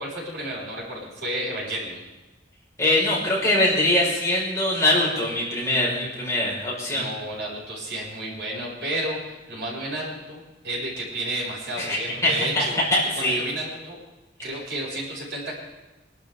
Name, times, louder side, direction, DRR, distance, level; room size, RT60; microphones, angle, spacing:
voice 1, 0.0-2.0 6.9-12.8 13.2-14.0 14.4-15.5, right 1 dB, 65° right, -5 dB, 7.4 m, -31 dB
voice 2, 2.8-7.0 11.8-12.7 12.9-13.4, left 1 dB, 15° left, -6 dB, 5.9 m, -22 dB
26.0 x 12.5 x 4.0 m, 1.1 s
head